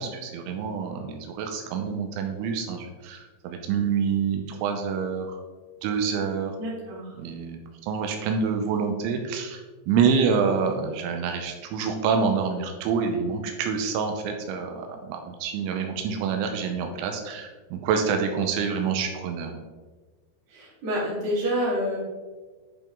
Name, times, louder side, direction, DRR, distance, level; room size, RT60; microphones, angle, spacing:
voice 1, 0.0-5.4 5.8-6.6 7.2-9.6 9.9-19.6, right 6 dB, 85° right, 4 dB, 3.1 m, -27 dB
voice 2, 6.6-7.1 20.5-22.0, equal, 45° right, -6 dB, 3.2 m, -28 dB
10.5 x 5.3 x 3.6 m, 1.3 s
omnidirectional pair, 5.5 m